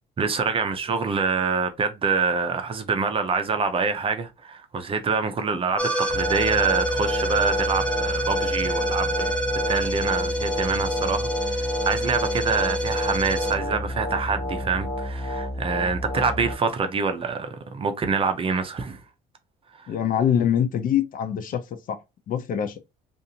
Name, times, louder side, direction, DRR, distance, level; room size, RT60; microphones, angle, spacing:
voice 1, 0.2-9.3 9.7-19.0, right 5 dB, 35° right, 0.6 m, -26 dB
sound 1, 5.8-16.6, equal, 5° left, 0.7 m, -26 dB
voice 2, 19.9-21.6 21.9-22.0 22.3-22.8, left 9 dB, 55° left, 0.5 m, -24 dB
2.6 x 2.5 x 2.7 m
cardioid pair, 110°, 17 cm